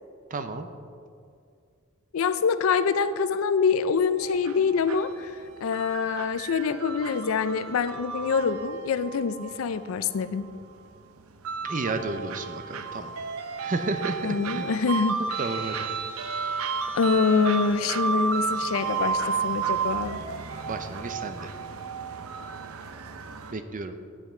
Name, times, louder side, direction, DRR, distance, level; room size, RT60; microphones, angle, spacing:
voice 1, 0.3-0.7 11.6-13.1 13.6-14.7 15.4-15.8 20.7-21.5 23.5-23.9, right 3 dB, 40° right, 9 dB, 0.6 m, -32 dB
voice 2, 2.1-5.3 5.6-10.5 14.2-15.2 16.9-20.2, left 5 dB, 75° left, 12 dB, 0.4 m, -25 dB
sound 1, 4.2-23.5, right 5 dB, 90° right, 0.6 m, -33 dB
9.6 x 8.2 x 4.4 m, 2.3 s
head